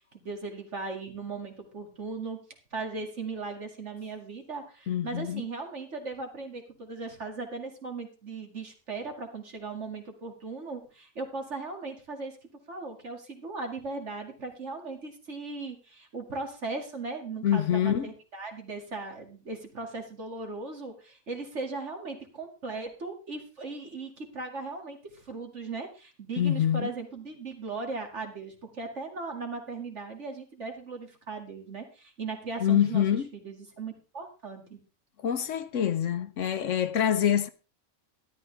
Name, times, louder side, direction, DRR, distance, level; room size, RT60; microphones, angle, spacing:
voice 1, 0.1-2.4 2.7-12.4 12.7-34.8, right 3 dB, 55° right, 2.5 m, -38 dB
voice 2, 4.9-5.4 17.4-18.1 26.4-26.9 32.6-33.3 35.2-37.5, left 10 dB, 65° left, 1.0 m, -25 dB
13.0 x 11.5 x 3.4 m
omnidirectional pair, 1.4 m